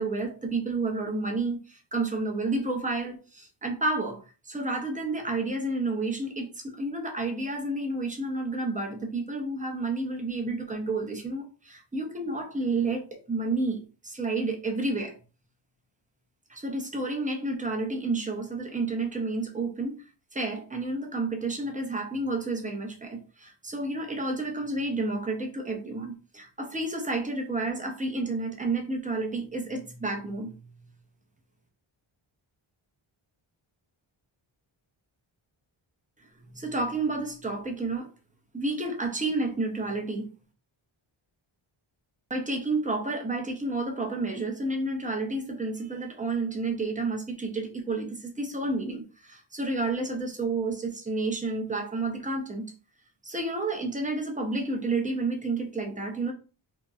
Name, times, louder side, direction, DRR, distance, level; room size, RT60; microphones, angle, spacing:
voice 1, 0.0-15.2 16.5-20.0 20.3-30.6 36.5-38.1 38.5-40.3 42.3-52.7 53.2-56.3, right 2 dB, 15° right, 0.5 m, -30 dB
2.8 x 2.1 x 2.3 m
wide cardioid pair, 110°, 50 cm